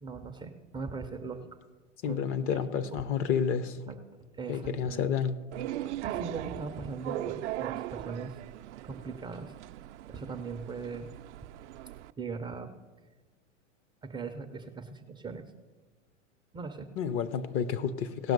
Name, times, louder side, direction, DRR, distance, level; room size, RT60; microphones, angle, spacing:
voice 1, 0.0-1.6 2.0-3.0 3.9-5.1 6.0-8.4 8.8-9.5 10.1-11.2 12.2-12.7 14.0-15.5 16.5-16.9, right 4 dB, 10° right, 6 dB, 0.4 m, -40 dB
voice 2, 2.0-3.8 4.5-5.4 17.0-18.3, left 7 dB, 35° left, 13 dB, 0.6 m, -30 dB
sound 1, 5.5-12.1, right 14 dB, 65° right, 0.5 m, -39 dB
17.5 x 5.8 x 5.3 m, 1.3 s
hypercardioid pair, 110°, 38 cm